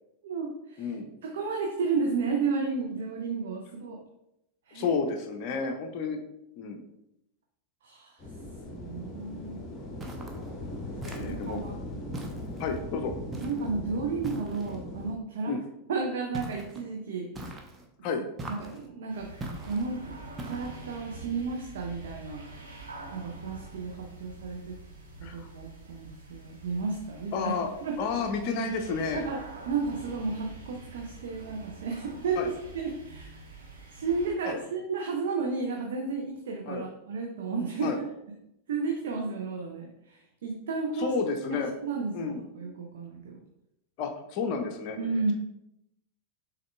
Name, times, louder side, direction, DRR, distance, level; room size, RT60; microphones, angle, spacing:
voice 1, 0.2-1.0 1.2-4.0 4.7-5.0 7.8-8.2 8.7-9.7 11.1-11.7 12.3-12.7 13.4-15.5 15.9-17.5 18.5-19.3 19.7-20.1 20.4-22.4 23.1-24.8 25.2-28.0 29.1-29.4 29.7-32.4 32.7-33.4 33.9-37.9 38.7-41.1 41.5-43.4 45.0-45.3, right 4 dB, 60° right, 1 dB, 0.6 m, -33 dB
voice 2, 0.8-1.1 4.7-6.2 6.6-6.8 11.0-11.6 12.6-13.1 13.6-13.7 15.5-15.6 18.0-18.2 25.2-25.5 27.3-27.7 28.0-29.2 30.0-30.1 32.4-32.5 34.4-34.5 36.7-36.9 37.8-38.0 41.0-41.7 42.1-42.4 44.0-45.0, left 5 dB, 45° left, 4 dB, 0.6 m, -31 dB
sound 1, 8.2-15.1, left 1 dB, 25° left, 1.1 m, -39 dB
sound 2, 10.0-10.5 11.0-11.6 12.1-12.8 13.3-13.7 14.2-14.8 16.3-16.8 17.3-17.9 18.4-18.9 19.4-19.9 20.4-20.9, right 2 dB, 15° right, 0.7 m, -41 dB
sound 3, 19.1-34.3, right 3 dB, 75° right, 1.3 m, -46 dB
6.3 x 3.5 x 2.3 m, 0.83 s
figure-of-eight pair, 90°, 0 cm